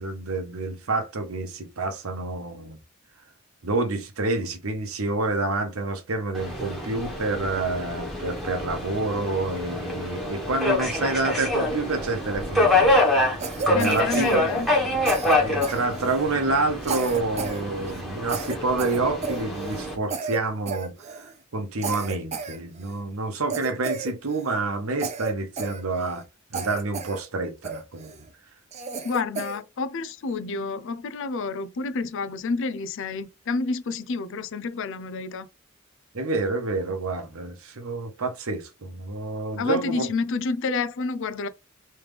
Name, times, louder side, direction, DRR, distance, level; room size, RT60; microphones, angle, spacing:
voice 1, 0.0-2.8 3.6-13.0 13.7-14.5 15.2-26.2 26.5-28.1 36.1-40.1, right 3 dB, 90° right, 0.9 m, -28 dB
Subway metro underground, 6.3-20.0, left 1 dB, ahead, 1.2 m, -26 dB
Cough, 13.4-14.8 15.1-16.3 16.8-17.6 17.9-18.0 18.3-19.8 20.1-20.4 20.7-21.3 21.8-23.0 23.5-24.6 25.0-26.2 26.5-27.2 27.6-28.2 28.7-29.6, right 4 dB, 30° right, 0.5 m, -33 dB
voice 2, 13.7-14.7 29.0-35.5 39.6-41.5, left 4 dB, 60° left, 0.4 m, -29 dB
3.3 x 3.2 x 3.4 m
head